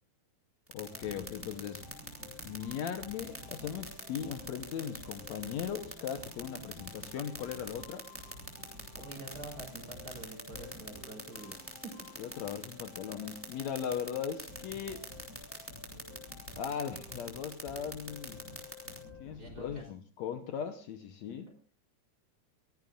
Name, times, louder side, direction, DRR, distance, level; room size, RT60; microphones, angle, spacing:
voice 1, 0.7-1.8 2.4-8.1 12.2-15.1 16.6-18.4 19.2-21.5, left 8 dB, 70° left, 8 dB, 2.1 m, -38 dB
sound 1, 0.7-19.0, right 1 dB, 5° right, 2.7 m, -42 dB
sound 2, 0.9-19.8, left 2 dB, 25° left, 8.6 m, -51 dB
voice 2, 8.9-12.1 19.4-19.8, right 2 dB, 30° right, 2 dB, 5.6 m, -47 dB
21.5 x 16.5 x 2.5 m, 0.38 s
omnidirectional pair, 3.6 m